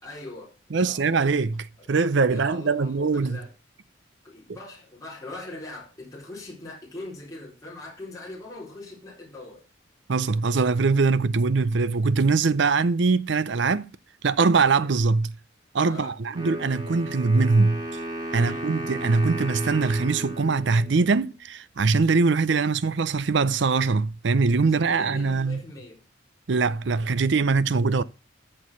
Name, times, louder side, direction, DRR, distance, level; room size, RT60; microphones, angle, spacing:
voice 1, 0.0-1.2 1.8-2.0 2.3-3.5 4.2-9.6 15.8-16.2 18.4-18.7 24.7-26.0, left 2 dB, 15° left, 4.1 m, -41 dB
voice 2, 0.7-3.4 10.1-13.9 14.2-15.3 15.7-17.8 18.3-25.6 26.5-28.0, right 4 dB, 60° right, 0.5 m, -22 dB
Wind instrument woodwind instrument, 16.3-21.3, right 1 dB, 20° right, 2.1 m, -35 dB
14.0 x 4.7 x 6.2 m
head